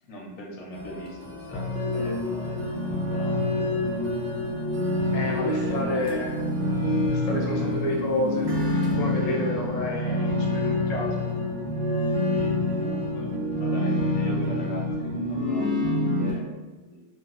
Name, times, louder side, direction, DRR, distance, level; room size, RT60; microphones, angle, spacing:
voice 1, 0.0-3.8 5.3-6.0 12.3-17.0, left 1 dB, 85° left, -1 dB, 1.1 m, -41 dB
sound 1, 0.7-16.0, right 2 dB, 55° right, 0.6 m, -43 dB
sound 2, 1.5-16.3, left 1 dB, 5° right, 0.6 m, -27 dB
voice 2, 5.1-6.3 7.1-11.2, left 1 dB, 45° left, -1 dB, 0.5 m, -30 dB
2.7 x 2.1 x 3.8 m, 1.2 s
omnidirectional pair, 1.3 m